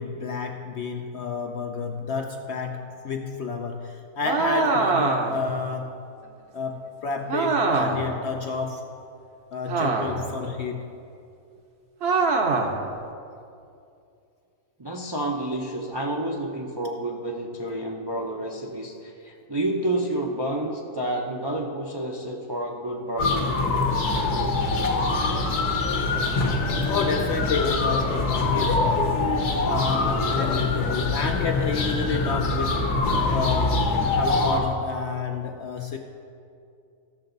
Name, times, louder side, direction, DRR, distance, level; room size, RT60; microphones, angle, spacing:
voice 1, 0.0-6.1 6.5-8.9 9.5-10.9 26.9-29.3 29.6-32.9 33.3-36.0, left 5 dB, 65° left, 4 dB, 0.7 m, -30 dB
sound 1, 4.2-5.5 7.3-8.1 9.7-10.3 12.0-12.8, right 4 dB, 50° right, 0.9 m, -23 dB
voice 2, 14.8-23.5, right 1 dB, 30° right, -1 dB, 0.4 m, -29 dB
sound 2, 23.2-34.6, left 3 dB, 85° left, 1.5 m, -24 dB
15.0 x 6.8 x 3.9 m, 2.5 s
omnidirectional pair, 1.6 m